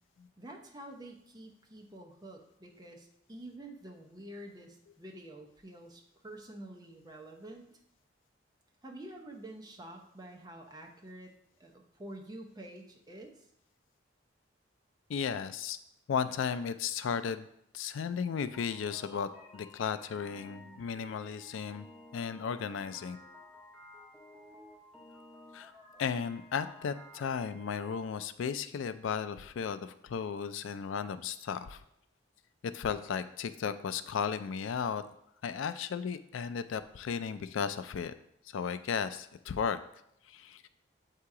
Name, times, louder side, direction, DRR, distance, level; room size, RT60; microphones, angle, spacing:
voice 1, 0.4-7.6 8.8-11.3 11.6-13.5, right 1 dB, 20° right, 1 dB, 0.6 m, -48 dB
voice 2, 15.1-15.8 16.1-17.5 17.7-21.9 22.1-23.2 25.5-25.7 26.0-31.8 32.6-35.0 35.4-38.1 38.5-39.8 40.3-40.7, left 6 dB, 80° left, 12 dB, 0.4 m, -35 dB
sound 1, 18.2-28.1, left 1 dB, ahead, 1.6 m, -54 dB
7.6 x 2.8 x 4.7 m, 0.76 s
head